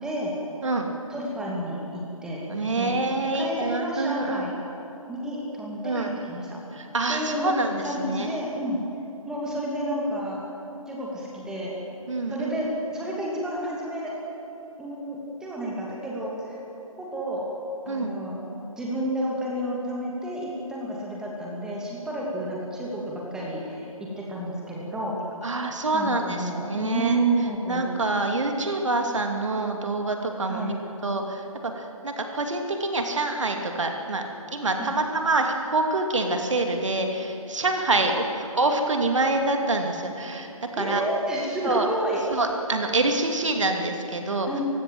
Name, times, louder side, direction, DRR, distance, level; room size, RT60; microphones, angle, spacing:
voice 1, 0.0-0.4 1.1-3.0 3.2-4.5 5.1-6.6 7.1-8.8 9.3-10.4 10.9-11.8 12.3-14.2 14.8-16.6 17.0-17.5 17.9-18.4 18.8-25.2 25.9-27.9 30.5-30.8 34.8-34.9 38.0-38.3 40.8-42.2 44.5-44.6, right 1 dB, 5° right, -4 dB, 2.4 m, -30 dB
voice 2, 2.5-4.4 5.8-6.1 6.7-8.3 12.1-12.6 17.9-18.1 25.4-27.2 27.7-30.8 31.0-34.2 34.5-40.5 40.8-41.0 41.6-41.9 42.3-44.5, right 2 dB, 55° right, 4 dB, 2.6 m, -26 dB
29.5 x 16.0 x 7.8 m, 2.9 s
figure-of-eight pair, 145°, 18 cm